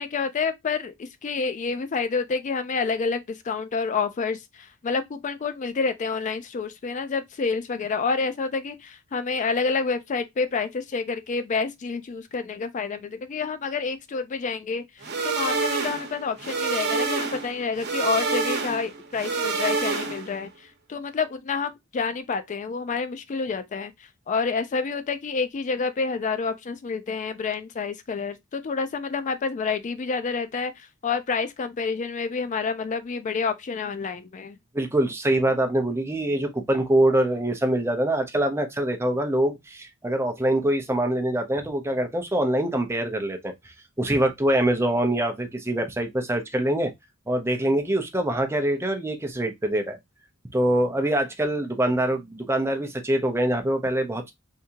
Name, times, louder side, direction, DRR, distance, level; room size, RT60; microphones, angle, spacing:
voice 1, 0.0-34.6, left 4 dB, 35° left, 0.4 m, -28 dB
sound 1, 15.0-20.4, right 4 dB, 55° right, 1.0 m, -27 dB
voice 2, 34.7-46.9 47.3-50.0 50.5-54.3, right 1 dB, 10° right, 0.6 m, -24 dB
3.5 x 2.7 x 2.7 m
head